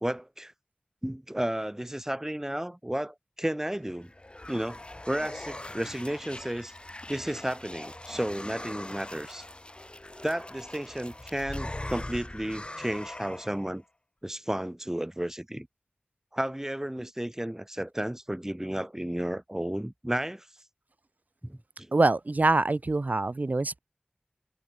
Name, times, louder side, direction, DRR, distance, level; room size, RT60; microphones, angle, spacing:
voice 1, 0.0-0.5 1.0-4.1 4.5-6.7 7.1-9.4 10.2-13.8 14.2-15.7 16.3-20.5 21.4-21.9, right 1 dB, 15° right, 1.2 m, -33 dB
sound 1, 3.7-13.7, left 1 dB, 35° left, 3.4 m, -41 dB
voice 2, 21.9-23.8, right 2 dB, 65° right, 1.4 m, -24 dB
wide cardioid pair, 55°, 3 cm